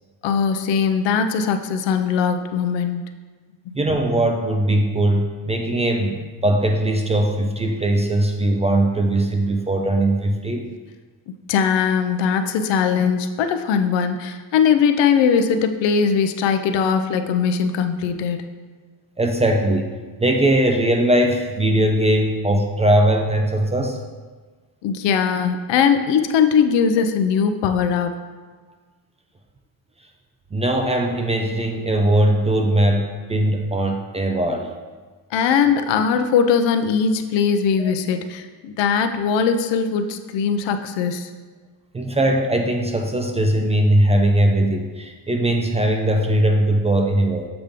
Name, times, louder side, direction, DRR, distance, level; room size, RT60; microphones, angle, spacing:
voice 1, 0.2-3.0 3.7-3.8 11.5-18.5 24.8-28.2 35.3-41.3, left 6 dB, 80° left, 8 dB, 0.7 m, -20 dB
voice 2, 3.7-10.7 19.2-19.9 20.2-24.0 30.5-34.7 37.8-37.9 41.9-47.5, right 1 dB, 15° right, 3 dB, 0.4 m, -20 dB
7.1 x 5.0 x 3.5 m, 1.4 s
cardioid pair, 135°, 43 cm